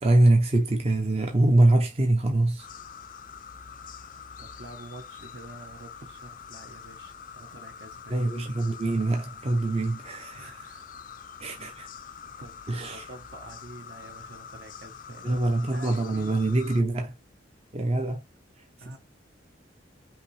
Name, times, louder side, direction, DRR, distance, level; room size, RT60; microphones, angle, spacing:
voice 1, 0.0-2.7 8.1-10.5 11.4-11.9 12.7-13.1 15.2-17.2 17.7-18.2, right 2 dB, 30° right, 0.6 m, -24 dB
sound 1, 2.6-16.8, left 7 dB, 45° left, 0.4 m, -45 dB
voice 2, 4.0-8.2 10.3-10.8 12.1-15.4 15.7-16.3 18.8-19.0, right 2 dB, 60° right, 1.0 m, -47 dB
5.6 x 2.8 x 3.1 m
head